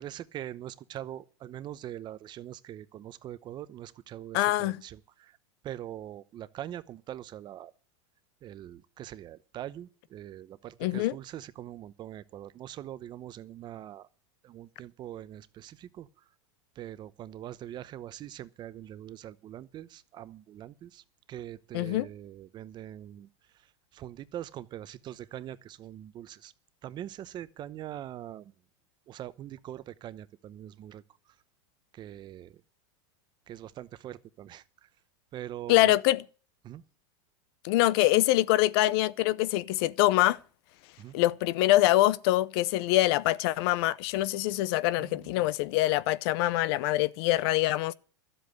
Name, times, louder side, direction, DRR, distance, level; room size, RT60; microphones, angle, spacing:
voice 1, 0.0-5.4 5.6-7.7 8.4-14.1 14.4-16.2 16.7-26.5 26.8-28.6 29.1-31.4 31.9-32.6 33.5-34.9 35.3-35.9 36.6-36.8 41.0-41.2 45.0-45.5, right 12 dB, 30° right, 0.8 m, -43 dB
voice 2, 4.3-4.8 10.8-11.1 21.7-22.1 35.7-36.2 37.6-40.4 41.1-47.9, left 16 dB, 55° left, 0.7 m, -24 dB
13.0 x 7.8 x 8.2 m
supercardioid pair, 140°, 15 cm